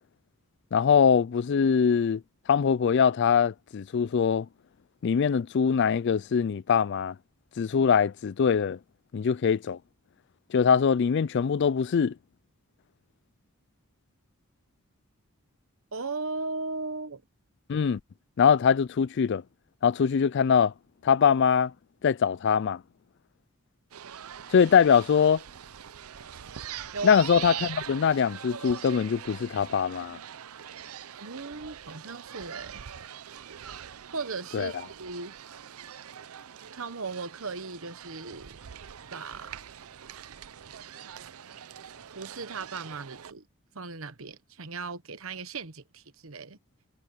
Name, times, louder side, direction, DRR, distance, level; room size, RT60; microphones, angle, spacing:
voice 1, 0.7-2.2 2.5-4.5 5.0-7.1 7.6-8.8 9.1-9.8 10.5-12.1 17.7-18.0 18.4-19.4 19.8-20.7 21.0-21.7 22.0-22.8 24.5-25.4 27.0-30.2 34.5-34.7, left 7 dB, 55° left, 0.3 m, -23 dB
voice 2, 15.9-17.2 26.9-27.2 31.2-32.8 34.1-35.3 36.7-38.6 39.1-39.6 42.1-43.4 43.7-46.6, right 3 dB, 70° right, 1.1 m, -37 dB
sound 1, 23.9-43.3, right 9 dB, 85° right, 0.6 m, -43 dB
head